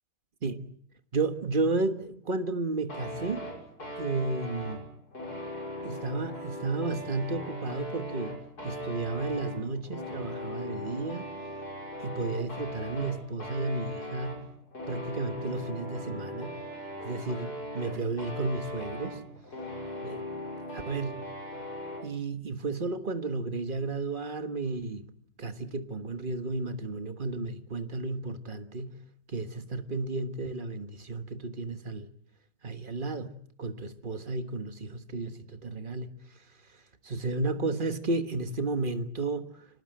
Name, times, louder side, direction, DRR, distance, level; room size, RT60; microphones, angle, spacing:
voice 1, 1.1-3.5 4.0-4.8 5.8-8.4 8.6-11.3 12.0-14.5 14.9-16.6 17.0-19.2 20.0-20.2 20.7-21.2 22.0-25.1 25.4-29.0 29.3-32.1 32.6-36.1 37.0-39.5, right 3 dB, 30° right, 1.3 m, -33 dB
sound 1, 2.9-22.1, equal, 45° left, 6.7 m, -39 dB
26.0 x 19.0 x 7.9 m
omnidirectional pair, 2.3 m